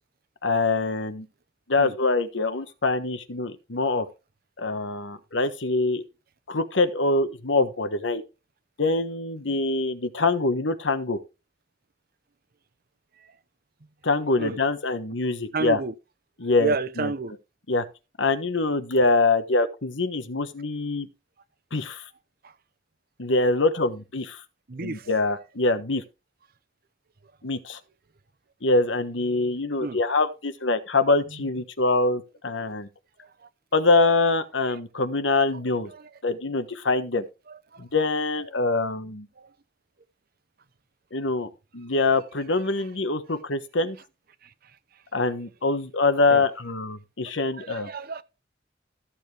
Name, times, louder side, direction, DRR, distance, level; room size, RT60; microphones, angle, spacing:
voice 1, 0.4-1.3 1.7-4.1 4.6-6.0 6.5-8.2 8.8-11.2 14.0-15.8 16.4-17.1 17.7-17.8 18.2-21.1 21.7-22.0 23.2-24.4 24.8-26.0 27.4-27.8 28.6-32.9 33.7-35.9 36.2-37.2 37.8-39.3 41.1-44.0 45.1-47.9, left 3 dB, 90° left, 1.3 m, -24 dB
voice 2, 15.5-15.9 16.6-17.3 22.4-22.5 24.7-25.1 29.8-30.0 31.3-31.4 33.2-33.5 35.9-36.1 37.5-37.8 39.4-39.5 44.4-44.5 46.3-46.4 47.5-48.2, right 3 dB, 55° right, 0.8 m, -31 dB
14.0 x 7.3 x 3.4 m
head